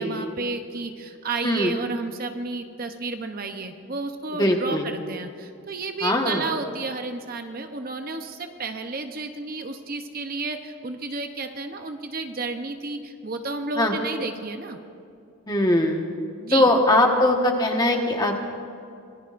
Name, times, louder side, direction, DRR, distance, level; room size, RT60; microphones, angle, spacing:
voice 1, 0.0-14.8 16.4-16.7, right 3 dB, 40° right, 6 dB, 0.7 m, -32 dB
voice 2, 4.4-4.8 6.0-6.5 13.8-13.9 15.5-16.0 16.5-18.4, left 1 dB, 20° left, 2 dB, 1.3 m, -20 dB
25.0 x 19.5 x 2.6 m, 2.5 s
head